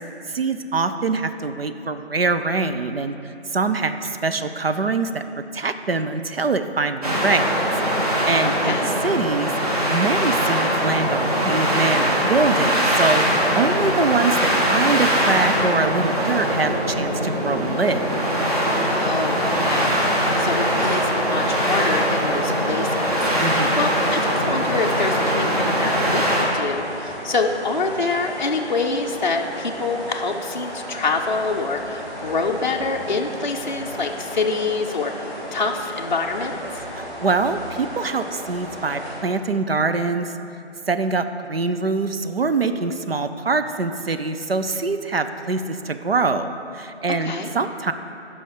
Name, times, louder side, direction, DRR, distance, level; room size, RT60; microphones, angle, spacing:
voice 1, 0.3-3.2 3.5-5.2 5.5-7.5 8.1-9.5 9.9-13.2 13.6-18.0 23.4-23.8 36.9-40.3 40.9-47.9, right 4 dB, 60° right, 9 dB, 0.5 m, -24 dB
sound 1, 7.0-26.4, equal, 35° right, 1.3 m, -21 dB
voice 2, 8.4-8.9 18.9-24.2 24.5-36.6 47.1-47.5, left 3 dB, 45° left, 2 dB, 0.5 m, -26 dB
sound 2, 24.0-39.2, equal, 10° right, 2.0 m, -35 dB
10.0 x 5.6 x 4.9 m, 2.7 s
figure-of-eight pair, 160°, 34 cm